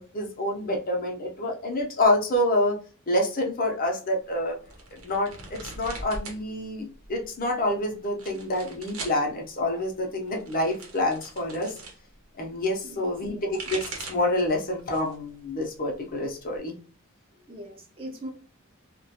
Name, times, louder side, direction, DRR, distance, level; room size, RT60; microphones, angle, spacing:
voice 1, 0.0-2.8 3.1-4.6 5.0-11.8 12.4-16.8, left 1 dB, 40° left, 0.6 m, -27 dB
sound 1, 4.7-6.4 6.7-7.4 8.0-9.2 10.2-12.0 13.2-14.3 14.8-15.2 15.6-16.6, right 3 dB, 85° right, 0.8 m, -40 dB
voice 2, 12.8-13.6 17.5-18.3, right 1 dB, 25° right, 0.5 m, -41 dB
2.4 x 2.2 x 2.7 m
head